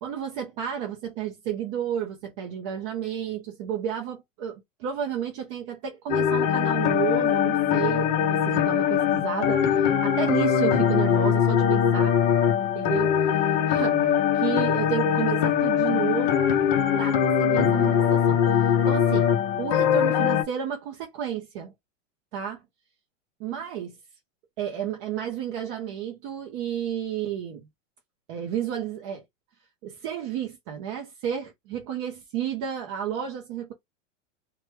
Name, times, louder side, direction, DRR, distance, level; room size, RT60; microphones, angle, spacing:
voice 1, 0.0-12.1 12.6-14.1 14.3-16.4 16.9-21.7 22.3-22.6 23.4-24.0 24.6-27.7 28.3-29.2 29.8-33.7, right 9 dB, 25° right, 0.4 m, -32 dB
sound 1, 6.1-20.4, left 8 dB, 40° left, 0.7 m, -22 dB
3.0 x 2.1 x 3.3 m
supercardioid pair, 160°, 38 cm